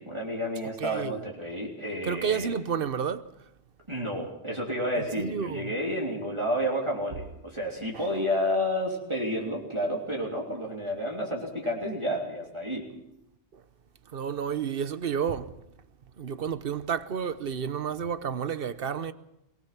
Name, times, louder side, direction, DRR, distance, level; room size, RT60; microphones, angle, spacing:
voice 1, 0.0-2.5 3.9-12.8, equal, 25° right, 3.3 m, -30 dB
voice 2, 0.8-1.2 2.0-3.2 5.2-5.7 7.9-8.1 14.1-15.5 16.2-19.1, right 7 dB, 60° right, 1.1 m, -30 dB
23.0 x 20.0 x 6.0 m
omnidirectional pair, 1.1 m